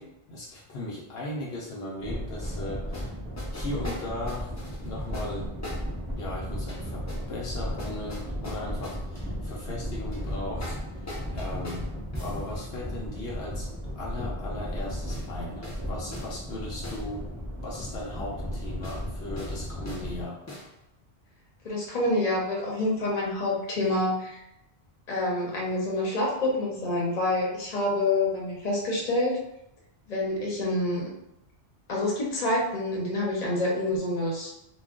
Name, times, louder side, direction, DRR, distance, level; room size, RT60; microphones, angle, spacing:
voice 1, 0.0-3.1 3.5-5.8 6.1-11.9 12.2-17.3 17.6-20.4, left 1 dB, 70° left, -3 dB, 0.8 m, -38 dB
sound 1, 2.0-20.2, equal, ahead, 0.9 m, -35 dB
sound 2, 2.4-2.6 2.9-3.1 3.4-6.0 6.7-7.3 7.8-9.2 10.1-12.4 15.1-15.3 15.6-15.8 16.1-16.3 16.8-17.0 18.8-19.0 19.4-19.6 19.9-20.1 20.5-20.7, left 1 dB, 20° left, 0.5 m, -40 dB
voice 2, 21.6-24.4 25.1-29.4 30.1-31.1 31.9-34.5, left 1 dB, 40° left, -4 dB, 0.8 m, -27 dB
2.3 x 2.2 x 3.5 m, 0.85 s
omnidirectional pair, 1.1 m